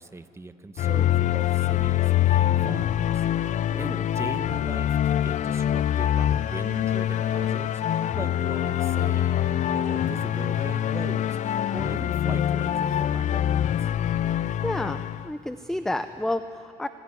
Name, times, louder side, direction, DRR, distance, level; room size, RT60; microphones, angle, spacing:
voice 1, 0.0-13.9, right 3 dB, 15° right, 9 dB, 1.1 m, -40 dB
sound 1, 0.8-15.3, left 11 dB, 45° left, 0.5 m, -25 dB
voice 2, 3.7-4.1 14.6-16.9, left 1 dB, 5° left, 10 dB, 0.6 m, -30 dB
Insect, 4.0-16.3, right 2 dB, 40° right, 6.4 m, -56 dB
sound 2, 6.1-11.2, right 7 dB, 90° right, 2.7 m, -53 dB
26.5 x 15.5 x 9.8 m, 2.9 s
cardioid pair, 110°, 17 cm